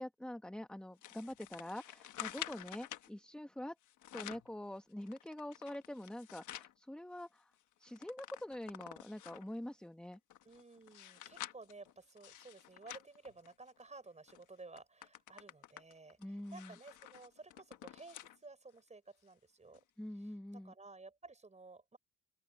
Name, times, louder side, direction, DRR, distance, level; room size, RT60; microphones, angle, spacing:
voice 1, 0.0-3.7 4.1-7.5 7.8-10.2 16.2-16.7 20.0-20.7, left 1 dB, 5° left, 1.2 m, -45 dB
sound 1, 1.0-3.1 3.8-4.5 5.0-6.7 7.2-7.3 7.5-9.5 10.1-13.9 14.3-14.4 14.8-18.4 18.8-18.9 19.7-19.8, left 13 dB, 80° left, 1.3 m, -50 dB
voice 2, 10.4-19.8 20.1-22.0, right 3 dB, 25° right, 5.8 m, -55 dB
open air
cardioid pair, 90°, 30 cm